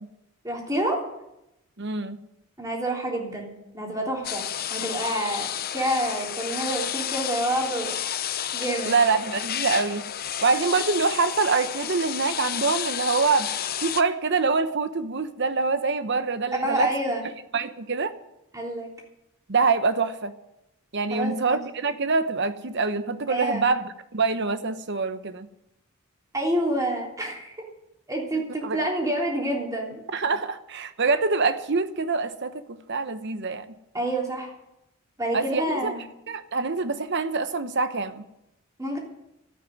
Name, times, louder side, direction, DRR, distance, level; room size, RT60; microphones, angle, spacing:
voice 1, 0.4-1.0 2.6-7.9 8.5-9.0 16.6-17.2 18.5-18.9 21.1-21.6 23.3-23.7 26.3-27.5 28.1-30.0 33.9-34.5 35.2-36.0 38.8-39.0, right 1 dB, 15° right, 3.3 m, -28 dB
voice 2, 1.8-2.2 8.9-10.0 10.4-13.5 13.8-16.9 17.5-18.1 19.5-20.3 20.9-25.5 28.6-28.8 30.1-33.7 35.3-35.9 36.3-38.2, right 4 dB, 50° right, 0.9 m, -25 dB
sound 1, 4.2-14.0, left 10 dB, 40° left, 0.7 m, -31 dB
13.0 x 9.2 x 9.3 m
head